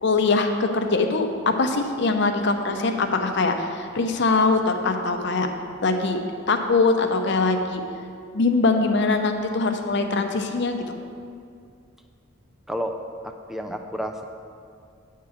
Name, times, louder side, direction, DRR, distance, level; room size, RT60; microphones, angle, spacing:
voice 1, 0.0-5.5 5.8-6.2 6.5-7.8 8.3-10.9, left 3 dB, 60° left, 5 dB, 0.7 m, -22 dB
voice 2, 13.2-14.2, equal, ahead, 4 dB, 0.4 m, -30 dB
9.4 x 3.7 x 7.1 m, 2.3 s
head